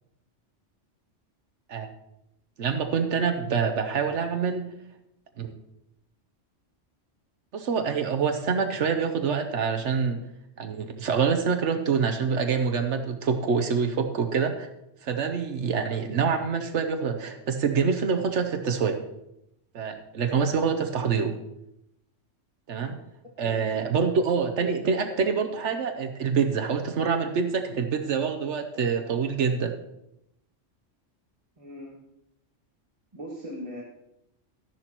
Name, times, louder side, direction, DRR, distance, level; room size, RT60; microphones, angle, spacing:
voice 1, 2.6-4.7 5.4-5.5 7.5-10.2 10.6-14.7 15.0-19.0 19.7-21.4 22.7-23.0 23.4-29.7, right 6 dB, 70° right, 6 dB, 1.1 m, -26 dB
voice 2, 23.4-23.7 24.4-24.5 24.8-24.9 25.4-25.5 31.6-32.0 33.1-33.8, equal, 30° right, -4 dB, 1.7 m, -39 dB
13.0 x 10.5 x 3.0 m, 0.84 s
omnidirectional pair, 1.3 m